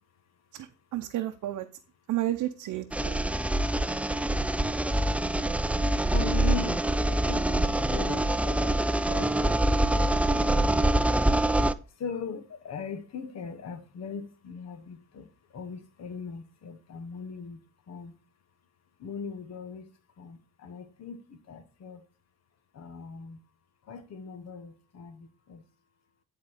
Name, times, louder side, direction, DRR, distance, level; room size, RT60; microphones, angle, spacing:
voice 1, 0.5-1.7 2.1-3.2, right 14 dB, 75° right, 0.7 m, -32 dB
sound 1, 2.9-11.7, right 1 dB, 5° right, 0.4 m, -25 dB
voice 2, 5.3-5.8 6.0-10.7 11.9-18.1 19.0-19.9 20.2-22.0 22.7-23.4 23.8-25.6, left 6 dB, 60° left, 1.3 m, -40 dB
10.5 x 4.1 x 4.8 m
cardioid pair, 90°, 30 cm